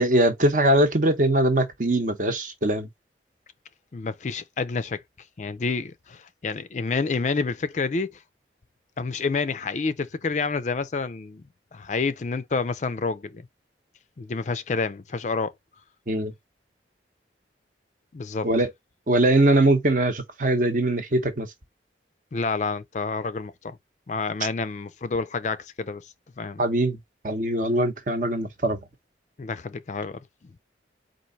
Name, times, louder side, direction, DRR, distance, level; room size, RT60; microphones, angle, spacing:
voice 1, 0.0-2.9 16.1-16.3 18.4-18.7 19.1-21.5 26.6-27.0 27.2-28.8, right 1 dB, 45° right, 0.8 m, -21 dB
voice 2, 3.9-5.0 5.4-8.2 9.0-11.4 11.7-13.5 14.2-15.5 18.1-18.5 22.3-23.8 24.1-26.1 26.4-26.7 29.4-30.2, left 4 dB, 40° left, 0.4 m, -28 dB
4.5 x 2.5 x 4.0 m
head